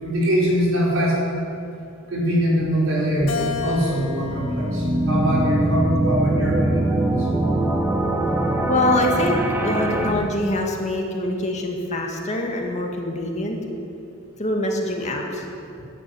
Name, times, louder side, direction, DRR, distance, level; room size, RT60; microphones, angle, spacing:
voice 1, 0.0-1.2 2.1-7.2, equal, 85° right, -4 dB, 4.8 m, -23 dB
sound 1, 3.2-10.1, right 1 dB, 10° right, 1.3 m, -23 dB
Keyboard (musical), 3.3-5.8 6.4-7.6, left 5 dB, 85° left, 1.7 m, -34 dB
voice 2, 8.7-9.4 9.6-13.6 14.4-15.4, left 1 dB, 35° left, 1 dB, 1.9 m, -24 dB
12.0 x 10.0 x 9.7 m, 2.6 s
head